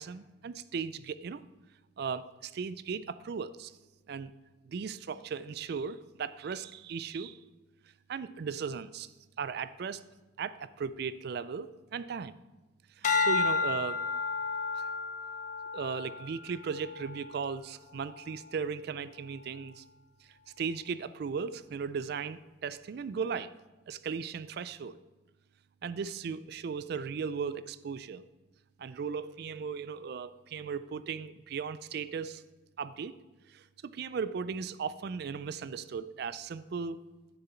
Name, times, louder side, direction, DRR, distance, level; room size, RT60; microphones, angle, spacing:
voice 1, 0.0-1.4 2.0-3.7 4.1-4.3 4.7-7.4 8.1-9.1 9.4-10.0 10.4-12.4 13.0-14.1 14.7-14.9 15.7-19.8 20.6-23.5 23.9-25.0 25.8-28.2 28.8-32.4 32.8-33.2 33.5-37.0, right 6 dB, 55° right, 15 dB, 0.3 m, -37 dB
sound 1, 13.0-17.5 18.1-18.5, left 4 dB, 40° left, 0.8 m, -32 dB
9.7 x 6.8 x 4.4 m, 1.1 s
head